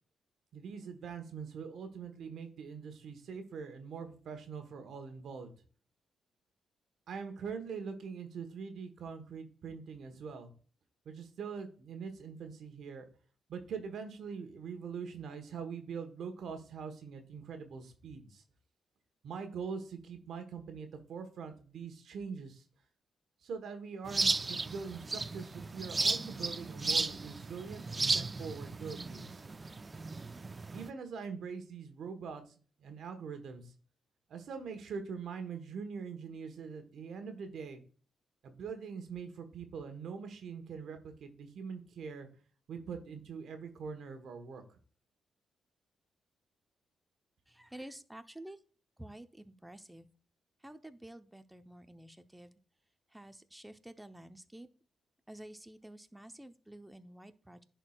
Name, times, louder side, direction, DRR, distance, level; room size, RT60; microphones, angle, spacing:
voice 1, 0.5-5.5 7.1-10.5 11.0-13.1 13.5-18.4 19.2-22.6 23.4-29.4 30.7-32.4 32.8-33.7 34.3-37.8 38.4-42.3 42.7-44.8, right 6 dB, 75° right, 7 dB, 1.2 m, -43 dB
sound 1, 24.1-30.9, right 3 dB, 30° right, 0.4 m, -34 dB
voice 2, 47.5-48.6 49.0-50.1 50.6-52.6 53.1-54.7 55.3-57.6, right 1 dB, 10° right, 9 dB, 0.8 m, -50 dB
10.5 x 4.5 x 2.4 m, 0.41 s
supercardioid pair, 60°, 0 cm